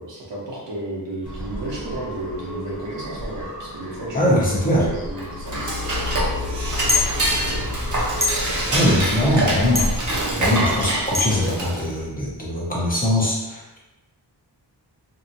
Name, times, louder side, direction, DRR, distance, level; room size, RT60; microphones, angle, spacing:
voice 1, 0.0-7.8, right 1 dB, 75° right, -4 dB, 0.9 m, -33 dB
sound 1, 1.2-8.6, right 1 dB, 65° left, 1.1 m, -36 dB
voice 2, 4.1-4.8 8.7-9.9 10.4-13.8, left 1 dB, 20° left, -5 dB, 0.7 m, -21 dB
Dishes pots and pans / Cutlery silverware, 5.1-12.0, right 1 dB, 45° right, 0.7 m, -24 dB
sound 2, 6.9-7.1 8.2-8.3 9.7-9.9 11.1-11.3, left 3 dB, 15° right, 0.4 m, -20 dB
2.8 x 2.4 x 2.6 m, 1.1 s
wide cardioid pair, 85°, 43 cm